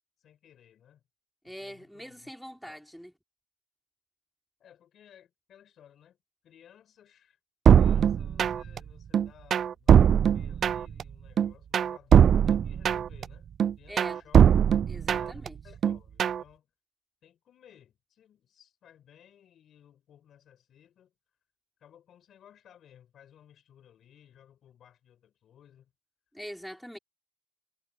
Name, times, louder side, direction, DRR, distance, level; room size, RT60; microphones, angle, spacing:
voice 1, 0.2-1.0 1.4-2.3 2.6-2.8 4.6-6.2 6.4-7.4 7.8-13.5 13.8-14.4 15.1-16.7 17.2-21.1 21.8-25.9, left 10 dB, 70° left, 5.2 m, -58 dB
voice 2, 1.4-3.1 13.9-14.2 14.9-15.6 26.3-27.0, equal, ahead, 4.5 m, -43 dB
sound 1, 7.7-8.8 9.1-11.0 11.4-13.2 13.6-15.5 15.8-16.4, right 8 dB, 60° right, 0.3 m, -20 dB
cardioid pair, 90°, 0 cm